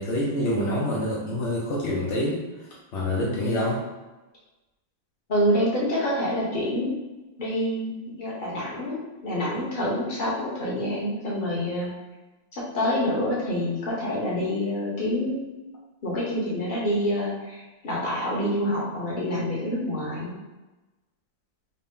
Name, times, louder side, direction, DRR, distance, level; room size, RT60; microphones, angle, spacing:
voice 1, 0.0-3.8, left 1 dB, 80° left, -5 dB, 0.6 m, -27 dB
voice 2, 5.3-6.9 7.4-11.9 12.5-15.5 16.0-20.3, equal, 35° left, -7 dB, 0.9 m, -27 dB
4.0 x 2.1 x 3.6 m, 1.1 s
omnidirectional pair, 2.0 m